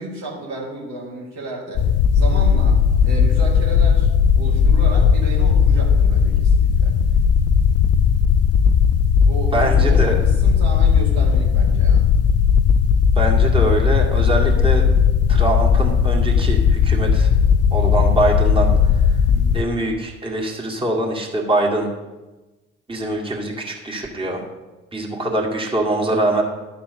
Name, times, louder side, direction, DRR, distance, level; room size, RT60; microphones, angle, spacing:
voice 1, 0.0-7.0 9.2-12.1 19.3-19.6 26.1-26.3, right 1 dB, 70° right, -4 dB, 2.4 m, -32 dB
sound 1, 1.8-19.6, left 6 dB, 50° left, 0.5 m, -16 dB
voice 2, 9.5-10.2 13.2-14.9 15.3-17.3 17.7-18.7 19.5-21.9 22.9-24.4 24.9-26.4, right 1 dB, 15° right, -1 dB, 2.2 m, -23 dB
12.0 x 4.3 x 6.7 m, 1.1 s
hypercardioid pair, 50°, 31 cm